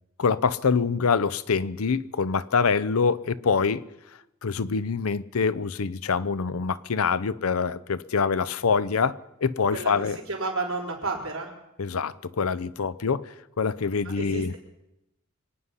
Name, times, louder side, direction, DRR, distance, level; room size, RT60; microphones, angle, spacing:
voice 1, 0.2-3.8 4.4-10.2 11.8-13.3 13.6-14.5, left 5 dB, 90° left, 0.6 m, -25 dB
voice 2, 10.3-11.5 14.0-14.6, right 3 dB, 75° right, 4.1 m, -31 dB
25.0 x 9.7 x 5.7 m
head